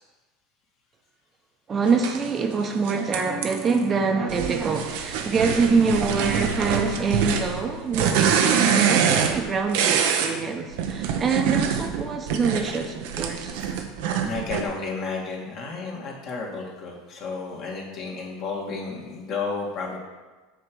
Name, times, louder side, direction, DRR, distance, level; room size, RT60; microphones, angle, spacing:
voice 1, 1.7-13.5, right 4 dB, 30° right, 3 dB, 0.9 m, -25 dB
sound 1, 2.0-2.2 2.9-3.8 4.3-10.3 10.7-14.6, right 7 dB, 70° right, 0.8 m, -25 dB
voice 2, 14.1-20.0, left 4 dB, 50° left, -2 dB, 2.0 m, -32 dB
8.1 x 3.3 x 6.1 m, 1.2 s
hypercardioid pair, 95°, 0 cm